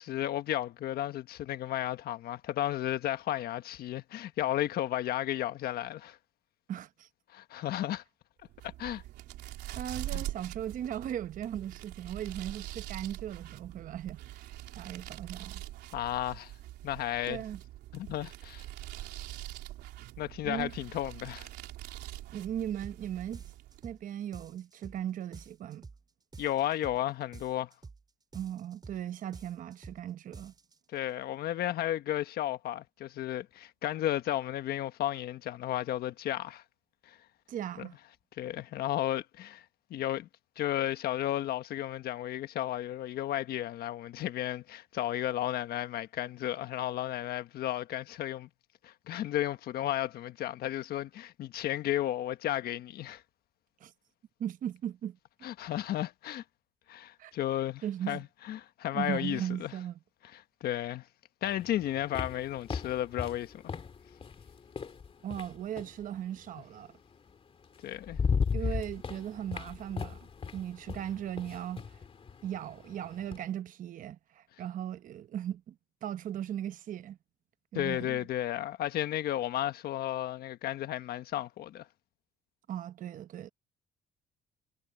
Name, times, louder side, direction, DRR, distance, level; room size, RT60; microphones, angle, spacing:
voice 1, 0.0-6.2 7.3-8.0 8.6-9.0 10.1-10.2 15.9-16.5 16.8-17.4 17.9-18.6 20.2-21.5 26.4-27.7 30.9-36.6 37.0-37.2 37.8-37.9 38.4-39.6 39.9-40.3 40.6-48.5 48.8-53.2 55.4-56.4 56.9-59.7 60.3-61.1 61.4-63.7 67.8-68.2 77.7-81.9, left 13 dB, 65° left, 1.4 m, -33 dB
voice 2, 6.7-7.1 9.7-15.6 17.3-17.6 20.4-20.7 22.3-23.5 23.8-25.9 28.3-30.5 37.5-38.0 53.8-53.9 54.4-55.2 57.2-57.3 57.8-58.2 58.9-60.0 65.2-67.0 68.5-72.0 72.4-77.2 77.7-78.3 82.7-83.5, right 10 dB, 50° right, 0.9 m, -38 dB
sound 1, 8.4-24.0, right 15 dB, 80° right, 3.4 m, -44 dB
sound 2, 22.8-23.0 23.3-24.0 24.3-25.0 25.3-26.0 26.3-27.0 27.3-28.0 28.3-29.0 29.3-30.0 30.3-30.8, right 4 dB, 25° right, 3.9 m, -49 dB
sound 3, 61.5-66.0 67.3-67.4 67.8-73.5, left 5 dB, 35° left, 2.7 m, -36 dB
cardioid pair, 110°, 17 cm